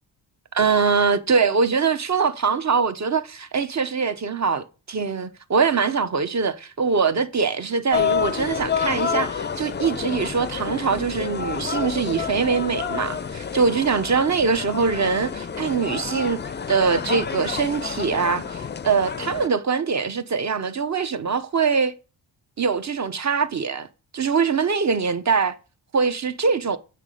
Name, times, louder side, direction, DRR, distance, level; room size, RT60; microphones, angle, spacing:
voice 1, 0.5-16.4 16.7-21.9 22.6-23.9 24.1-25.5 25.9-26.8, right 5 dB, 40° right, 0.8 m, -23 dB
sound 1, 7.9-19.5, left 7 dB, 25° left, 0.4 m, -29 dB
7.6 x 3.5 x 6.3 m
cardioid pair, 75°, 42 cm